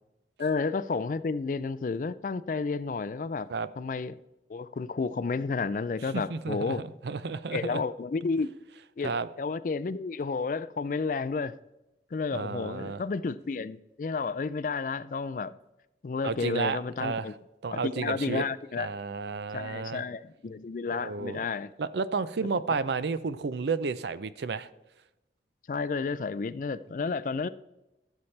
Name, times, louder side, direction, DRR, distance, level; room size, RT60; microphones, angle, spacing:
voice 1, 0.4-3.5 3.8-4.2 4.5-6.8 7.5-8.5 9.0-11.5 12.1-15.5 16.0-17.3 17.7-18.9 19.5-21.7 25.7-27.5, left 4 dB, 45° left, 15 dB, 0.3 m, -31 dB
voice 2, 6.1-6.8 7.0-7.8 9.0-9.3 12.3-13.0 16.2-17.3 17.6-18.5 18.8-20.0 20.9-21.5 21.8-24.7, right 4 dB, 70° right, 15 dB, 0.5 m, -32 dB
14.0 x 7.1 x 3.3 m, 0.95 s
head